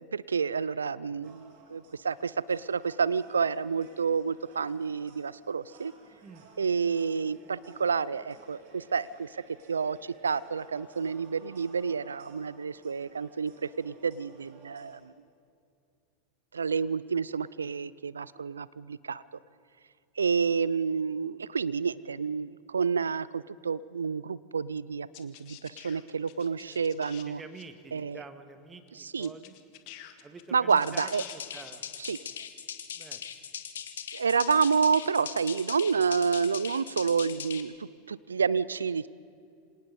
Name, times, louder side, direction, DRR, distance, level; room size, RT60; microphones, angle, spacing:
voice 1, 0.0-5.9 6.6-9.4 9.7-15.0 16.5-19.2 20.2-27.4 27.9-28.2 29.0-29.3 30.5-31.2 32.0-32.2 34.1-39.1, right 5 dB, 85° right, 20 dB, 0.4 m, -29 dB
sound 1, 1.2-15.0, right 4 dB, 60° right, 3.8 m, -57 dB
sound 2, 25.1-27.3 27.5-27.6 28.9-29.0 29.2-31.7, left 15 dB, 55° left, 1.6 m, -49 dB
voice 2, 27.2-29.6 30.2-31.8 32.9-33.2, right 4 dB, 20° right, 9 dB, 1.9 m, -47 dB
sound 3, 30.8-37.6, left 8 dB, 75° left, 1.4 m, -40 dB
26.5 x 18.5 x 5.4 m, 2.5 s
hypercardioid pair, 90°, 0 cm